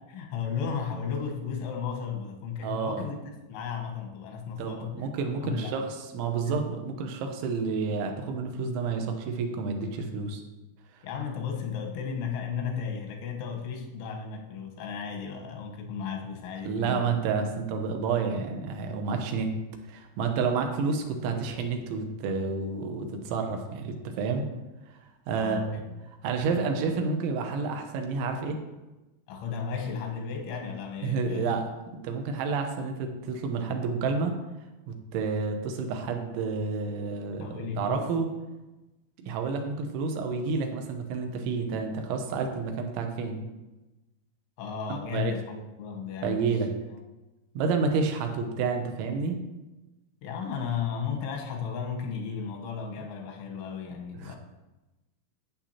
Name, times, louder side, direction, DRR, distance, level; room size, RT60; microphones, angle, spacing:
voice 1, 0.0-5.0 5.4-5.9 6.4-6.6 10.0-10.1 11.0-17.1 20.4-20.6 25.3-25.8 29.3-31.5 37.4-38.1 44.6-46.5 50.2-54.4, left 6 dB, 90° left, 1 dB, 3.6 m, -34 dB
voice 2, 2.6-3.1 4.6-5.8 6.1-10.4 16.7-19.5 19.9-24.5 25.3-25.8 26.2-28.6 31.0-34.3 34.9-37.5 37.8-38.3 39.2-43.4 44.9-45.3 46.2-46.7 47.5-49.4 54.2-54.4, right 4 dB, 90° right, 4 dB, 3.4 m, -30 dB
11.5 x 8.4 x 2.9 m, 1.1 s
omnidirectional pair, 5.3 m